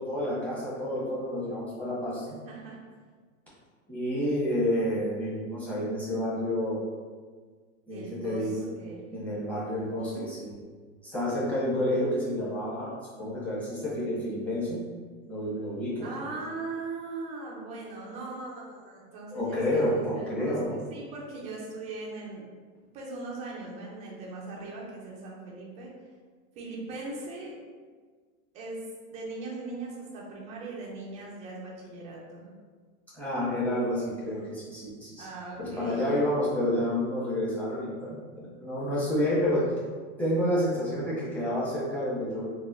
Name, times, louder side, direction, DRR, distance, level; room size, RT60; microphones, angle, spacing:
voice 1, 0.0-2.4 3.9-6.8 7.9-8.6 9.1-10.5 11.0-12.9 13.2-14.8 15.3-16.1 19.3-20.8 33.1-35.3 35.6-39.7 40.2-42.5, left 1 dB, 5° left, -8 dB, 1.0 m, -29 dB
voice 2, 2.4-2.8 7.9-9.0 9.7-10.2 16.0-22.4 22.9-25.9 26.6-27.6 28.5-28.8 29.1-32.5 35.2-36.0, right 3 dB, 20° right, -3 dB, 0.3 m, -40 dB
4.1 x 2.4 x 2.4 m, 1.5 s
supercardioid pair, 140°, 41 cm